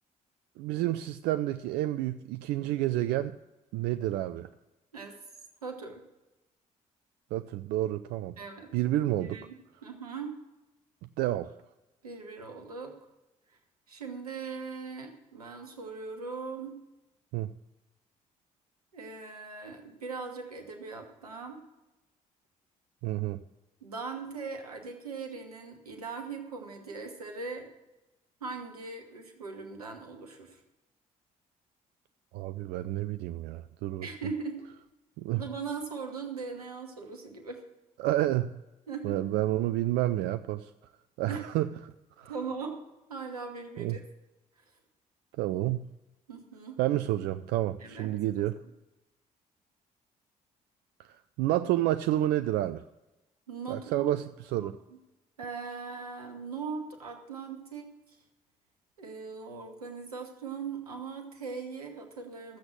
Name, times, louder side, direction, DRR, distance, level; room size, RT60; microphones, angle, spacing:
voice 1, 0.6-3.3 3.7-4.5 7.3-8.4 8.7-9.4 11.2-11.5 17.3-17.5 23.0-23.4 32.3-34.1 35.2-35.4 38.0-38.5 39.0-40.7 41.2-42.3 43.8-44.0 45.4-45.9 46.8-48.5 51.0-51.1 51.4-52.8 53.7-54.2 54.5-54.7, right 14 dB, 65° right, 11 dB, 0.4 m, -29 dB
voice 2, 5.6-6.0 8.4-8.7 9.2-10.4 12.0-13.0 13.5-13.6 13.9-16.8 18.9-21.6 23.8-27.7 28.4-30.6 34.0-34.7 35.3-37.6 38.9-39.2 41.3-41.5 42.3-42.8 43.1-44.0 44.6-44.7 46.3-46.8 47.8-48.4 53.5-54.1 54.5-54.7 55.4-58.2 59.0-62.6, right 5 dB, 85° right, 4 dB, 1.3 m, -40 dB
13.0 x 7.9 x 7.3 m, 1.0 s
figure-of-eight pair, 40°, 19 cm